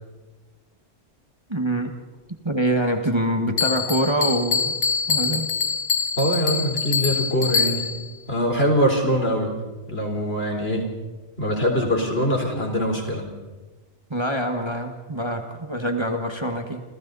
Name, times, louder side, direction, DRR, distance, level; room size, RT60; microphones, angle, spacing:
voice 1, 1.5-1.9 2.4-4.7 5.1-5.5 14.1-16.8, right 1 dB, 20° right, 4 dB, 1.7 m, -25 dB
Bell, 3.6-8.1, left 6 dB, 85° left, 1.8 m, -24 dB
voice 2, 6.2-7.9 8.3-9.6 9.9-10.9 11.4-13.3, equal, 50° left, 2 dB, 4.2 m, -23 dB
29.0 x 28.0 x 4.1 m, 1.2 s
omnidirectional pair, 1.3 m